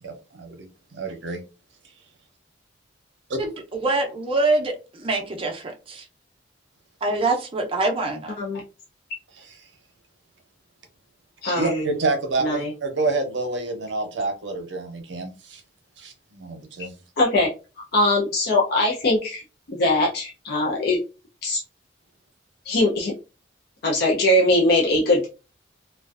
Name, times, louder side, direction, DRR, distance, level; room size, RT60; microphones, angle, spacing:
voice 1, 0.0-0.7 0.9-1.4 11.5-15.6 16.0-16.9, right 3 dB, 65° right, 0.6 m, -28 dB
voice 2, 3.4-6.1 7.0-8.4, right 2 dB, 30° right, 0.5 m, -25 dB
voice 3, 11.4-11.9 12.4-12.7 17.2-17.5 17.9-19.4 19.7-21.0 21.4-21.6 22.7-23.1 23.8-25.3, left 1 dB, 55° left, 0.5 m, -21 dB
2.5 x 2.2 x 2.3 m
head